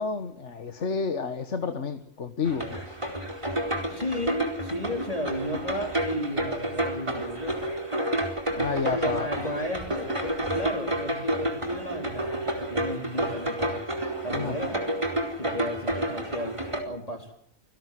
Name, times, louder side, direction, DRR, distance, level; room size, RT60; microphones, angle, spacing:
voice 1, 0.0-3.0 8.5-9.3 14.3-14.6, left 5 dB, 65° left, 8 dB, 1.8 m, -30 dB
sound 1, 2.4-16.8, right 1 dB, 25° right, 4.6 m, -30 dB
voice 2, 3.9-7.7 8.8-13.8 14.2-15.0 15.4-17.3, left 1 dB, 30° left, 3 dB, 4.5 m, -34 dB
29.0 x 18.5 x 7.7 m, 0.67 s
omnidirectional pair, 1.3 m